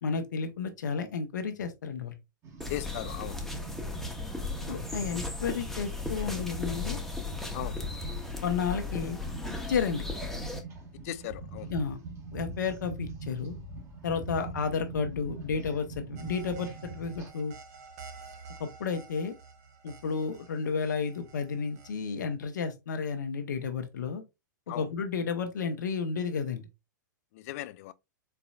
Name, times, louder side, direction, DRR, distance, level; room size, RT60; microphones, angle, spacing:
voice 1, 0.0-2.2 4.7-7.0 8.4-9.2 9.7-10.0 11.7-12.0 12.3-13.6 14.0-17.5 18.6-19.3 19.8-24.2 24.7-26.7, left 5 dB, 70° left, 1.0 m, -32 dB
sound 1, 2.4-17.3, right 3 dB, 25° right, 1.5 m, -43 dB
sound 2, 2.6-10.6, left 3 dB, ahead, 1.0 m, -36 dB
voice 2, 2.7-3.4 7.5-7.8 11.0-11.7 14.4-14.5 24.7-24.9 27.3-27.9, left 15 dB, 50° left, 0.4 m, -38 dB
sound 3, 16.2-21.9, right 5 dB, 50° right, 1.2 m, -50 dB
4.5 x 3.9 x 2.4 m
figure-of-eight pair, 105°, 10 cm